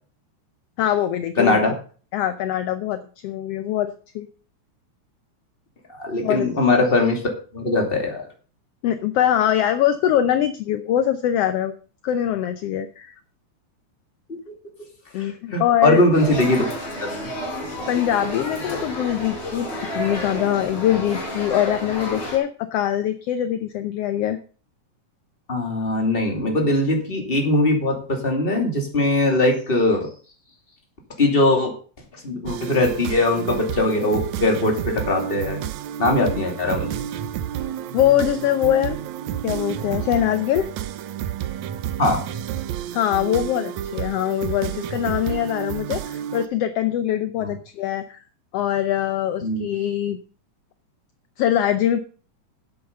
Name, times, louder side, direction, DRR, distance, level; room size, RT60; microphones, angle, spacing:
voice 1, 0.8-1.7 2.1-4.3 6.2-6.5 8.8-11.7 12.0-13.1 15.1-16.0 17.9-24.4 37.9-39.0 39.4-40.7 42.9-48.2 48.5-50.2 51.4-52.0, left 11 dB, 70° left, 10 dB, 1.5 m, -23 dB
voice 2, 1.4-1.7 6.0-7.2 7.5-8.2 14.3-14.4 15.2-16.7 17.0-17.3 25.5-30.1 31.2-31.7 32.2-35.6 36.0-36.9 42.0-42.2 47.4-47.5 49.4-49.6, left 2 dB, 20° left, 1 dB, 2.6 m, -21 dB
sound 1, 16.1-22.4, equal, 45° left, 5.1 m, -31 dB
sound 2, 32.4-46.5, right 10 dB, 75° right, 2.0 m, -30 dB
9.5 x 8.3 x 6.7 m, 0.40 s
omnidirectional pair, 3.5 m